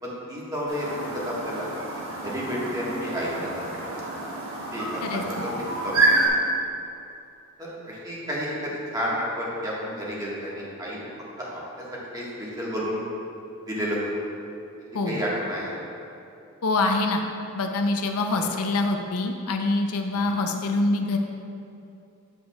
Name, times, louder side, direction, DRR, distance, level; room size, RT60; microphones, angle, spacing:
voice 1, 0.0-1.7 2.2-3.6 3.9-4.1 4.7-5.5 5.8-6.0 7.6-11.1 11.4-11.8 12.1-13.0 13.7-14.0 15.1-15.7 18.4-18.5 20.1-20.4, equal, 15° right, -6 dB, 1.4 m, -31 dB
Chirp tweet, 0.7-6.3, right 3 dB, 70° right, 1.3 m, -28 dB
voice 2, 5.0-5.5 14.9-15.2 16.6-17.2 17.5-21.2, left 2 dB, 80° left, 4 dB, 0.6 m, -25 dB
8.3 x 7.8 x 2.3 m, 2.7 s
head